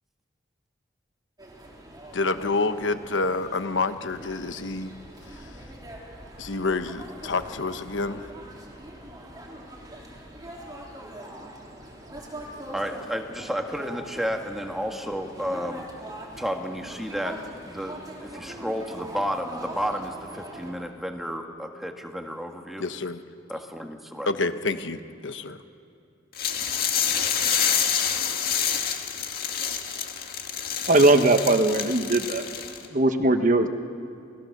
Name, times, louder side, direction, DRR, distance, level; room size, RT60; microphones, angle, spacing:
sound 1, 1.4-20.7, right 1 dB, 20° right, 3.5 m, -42 dB
voice 1, 2.1-4.9 5.3-5.4 6.4-8.2 22.8-23.2 24.3-25.6, left 3 dB, 75° left, 10 dB, 1.0 m, -28 dB
voice 2, 12.7-15.9 16.4-17.4 17.7-22.8 23.5-24.3, equal, ahead, 3 dB, 1.6 m, -32 dB
sound 2, 26.4-32.9, left 8 dB, 50° left, 1.9 m, -27 dB
voice 3, 30.9-32.4 32.9-33.7, right 2 dB, 45° right, 8 dB, 1.1 m, -19 dB
27.5 x 19.5 x 6.6 m, 2.5 s
head